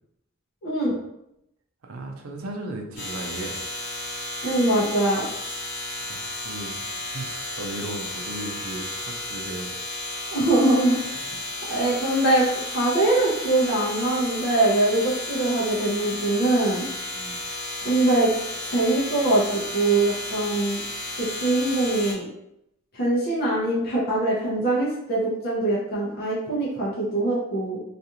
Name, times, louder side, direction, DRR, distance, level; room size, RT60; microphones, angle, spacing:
voice 1, 0.6-1.0 4.4-5.2 10.3-11.0 11.7-16.9 17.8-18.3 18.6-20.8 21.2-22.3 22.9-27.8, right 2 dB, 45° left, -5 dB, 0.6 m, -22 dB
voice 2, 1.8-3.6 6.0-9.7 11.3-11.8 17.1-17.4, right 2 dB, 80° right, 2 dB, 0.5 m, -36 dB
sound 1, 3.0-22.1, left 1 dB, 80° left, 1.0 m, -33 dB
2.4 x 2.4 x 2.8 m, 0.80 s
head